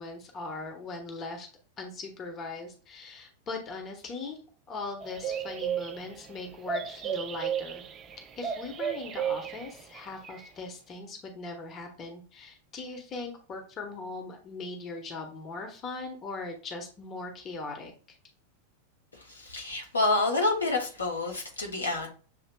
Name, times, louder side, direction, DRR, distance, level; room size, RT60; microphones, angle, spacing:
voice 1, 0.0-1.5 1.8-4.4 4.7-7.8 8.4-17.9, left 3 dB, 30° left, 3 dB, 0.9 m, -39 dB
sound 1, 5.0-10.0 10.2-10.5, right 8 dB, 25° right, 0.4 m, -34 dB
voice 2, 19.1-22.1, left 2 dB, 75° left, 0 dB, 1.0 m, -28 dB
7.1 x 2.8 x 2.2 m, 0.39 s
figure-of-eight pair, 90°, 0 cm